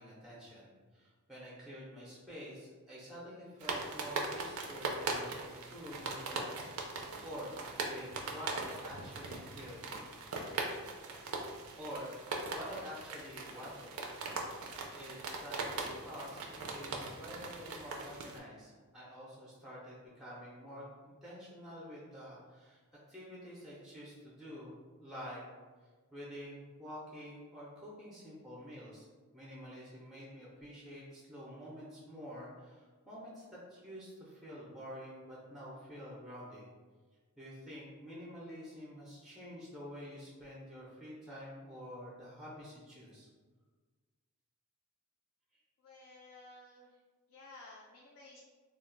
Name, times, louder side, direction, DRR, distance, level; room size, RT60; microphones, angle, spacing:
voice 1, 0.0-6.5 6.9-7.5 7.9-9.9 11.8-14.0 14.9-22.8 23.1-25.4 26.1-29.1 29.3-36.7 37.4-43.3, equal, ahead, -6 dB, 0.5 m, -48 dB
sound 1, 3.6-18.4, right 3 dB, 65° right, 0.4 m, -40 dB
voice 2, 45.8-47.0 47.3-48.4, left 2 dB, 65° left, -2 dB, 0.4 m, -55 dB
2.3 x 2.1 x 3.7 m, 1.4 s
head